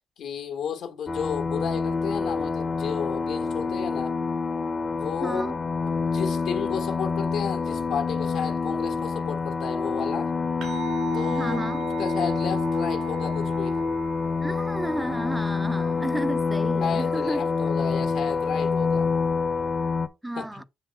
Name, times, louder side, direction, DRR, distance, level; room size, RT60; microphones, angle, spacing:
voice 1, 0.2-4.1 4.9-5.6 5.8-10.3 11.1-11.7 12.0-13.8 16.8-19.1 20.3-20.7, left 7 dB, 75° left, 1.4 m, -32 dB
sound 1, 1.1-20.1, left 4 dB, 35° left, 0.7 m, -27 dB
voice 2, 5.2-5.6 11.3-11.9 14.4-17.5 20.2-20.6, right 1 dB, 10° right, 0.3 m, -32 dB
sound 2, 10.6-19.3, right 15 dB, 90° right, 2.7 m, -42 dB
7.7 x 3.1 x 4.7 m
cardioid pair, 90°, 0 cm